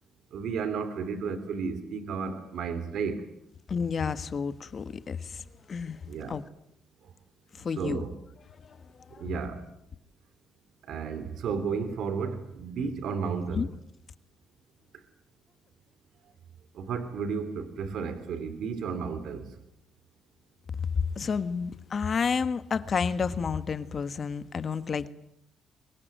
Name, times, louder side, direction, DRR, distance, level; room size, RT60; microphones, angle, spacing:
voice 1, 0.3-3.3 6.1-6.4 7.8-8.1 9.2-9.6 10.8-13.7 16.7-19.6, right 5 dB, 75° right, 11 dB, 3.0 m, -33 dB
voice 2, 3.7-6.0 6.3-6.4 7.5-8.0 8.6-8.8 9.1-9.2 13.5-13.7 20.8-20.9 21.1-25.1, left 5 dB, 45° left, 13 dB, 1.5 m, -30 dB
24.0 x 22.0 x 9.3 m, 0.76 s
cardioid pair, 90°, 0 cm